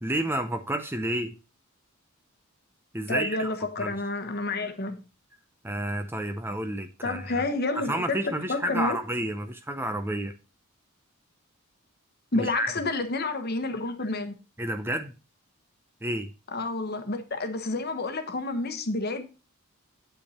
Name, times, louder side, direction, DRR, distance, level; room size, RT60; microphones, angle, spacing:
voice 1, 0.0-1.4 2.9-3.5 3.8-4.0 5.6-7.4 7.9-10.3 12.3-12.7 14.6-15.1 16.0-16.3, right 1 dB, 10° right, 0.6 m, -30 dB
voice 2, 3.1-5.0 7.0-9.0 12.3-14.3 16.5-19.3, left 2 dB, 45° left, 1.2 m, -29 dB
8.5 x 5.7 x 4.2 m
head